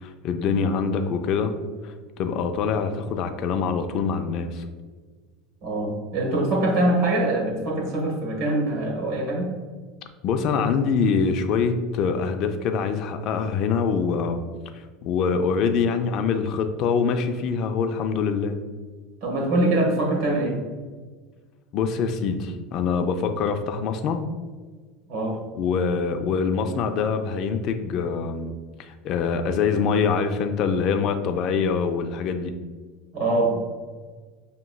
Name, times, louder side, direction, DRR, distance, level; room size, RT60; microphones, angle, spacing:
voice 1, 0.0-1.5 1.8-4.6 10.2-14.4 14.7-18.6 21.7-24.2 25.5-32.5, left 5 dB, 45° left, 6 dB, 0.3 m, -24 dB
voice 2, 5.6-9.5 19.2-20.6 25.1-25.4 33.1-33.6, right 2 dB, 60° right, 0 dB, 1.3 m, -23 dB
5.7 x 2.9 x 2.2 m, 1.5 s
supercardioid pair, 145°, 0 cm